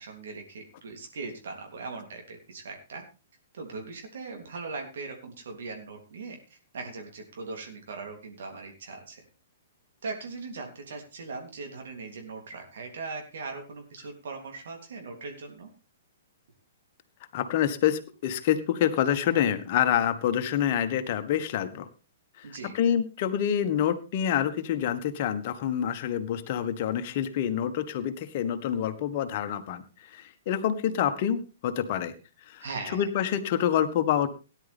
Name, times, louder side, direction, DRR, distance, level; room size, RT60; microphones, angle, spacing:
voice 1, 0.0-3.0 3.5-9.2 10.0-15.7 22.4-22.8 32.6-33.1, right 4 dB, 60° right, 3 dB, 3.3 m, -40 dB
voice 2, 17.3-21.9 22.4-32.1 32.4-32.6 32.9-34.3, left 9 dB, 45° left, 9 dB, 1.6 m, -27 dB
18.0 x 10.5 x 3.6 m, 0.32 s
figure-of-eight pair, 115°, 0 cm